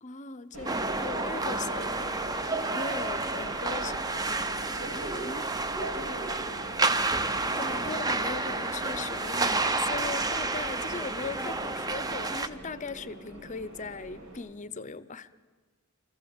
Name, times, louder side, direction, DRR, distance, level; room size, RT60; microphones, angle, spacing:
voice 1, 0.0-4.4 5.2-5.5 7.6-15.3, left 4 dB, 35° left, 16 dB, 0.6 m, -39 dB
Subway metro underground, 0.5-14.4, right 1 dB, 90° right, 5.7 m, -43 dB
sound 1, 0.7-12.5, right 3 dB, 15° right, 0.6 m, -30 dB
voice 2, 3.4-4.1 5.9-6.8, equal, 65° right, 2 dB, 2.6 m, -46 dB
24.5 x 15.0 x 7.1 m, 1.4 s
head